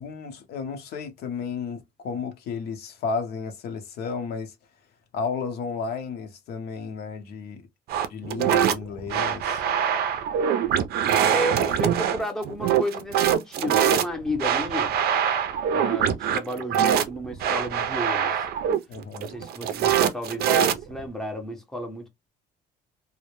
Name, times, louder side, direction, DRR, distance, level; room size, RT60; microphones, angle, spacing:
voice 1, 0.0-4.5 5.1-7.6 8.1-9.6 18.9-19.3, left 5 dB, 70° left, 0.7 m, -33 dB
sound 1, 7.9-21.1, right 9 dB, 65° right, 0.4 m, -23 dB
voice 2, 11.3-14.9 15.7-18.4 19.2-22.1, equal, 5° left, 0.6 m, -32 dB
2.1 x 2.1 x 3.0 m
cardioid pair, 110°, 17 cm